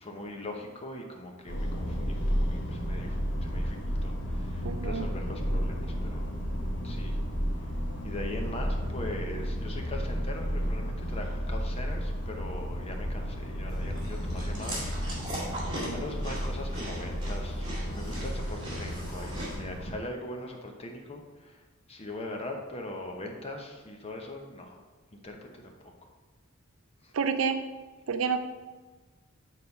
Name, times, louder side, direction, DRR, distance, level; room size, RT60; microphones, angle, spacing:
voice 1, 0.0-6.3 6.8-7.2 8.0-15.3 15.7-21.6 21.9-24.8 25.1-25.9 27.0-27.1, left 1 dB, 30° left, 2 dB, 0.9 m, -41 dB
sound 1, 1.5-19.9, equal, 60° left, 1.2 m, -32 dB
voice 2, 4.6-5.1 27.1-27.6 28.1-28.4, right 5 dB, 80° right, 9 dB, 0.5 m, -28 dB
Chewing mastication, 13.7-19.5, right 1 dB, 25° right, 2.4 m, -39 dB
6.6 x 4.1 x 5.4 m, 1.3 s
head